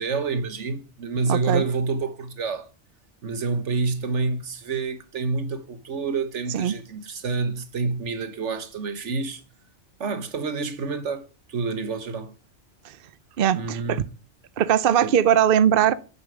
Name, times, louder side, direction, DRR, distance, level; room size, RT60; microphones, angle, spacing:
voice 1, 0.0-2.7 3.2-9.4 10.0-12.3 13.5-14.0 15.0-15.1, right 4 dB, 80° right, 1.5 m, -28 dB
voice 2, 1.3-1.6 6.5-6.7 12.8-13.0 13.4-14.0 14.6-15.9, right 9 dB, 55° right, 0.7 m, -20 dB
8.5 x 6.9 x 7.3 m
omnidirectional pair, 1.2 m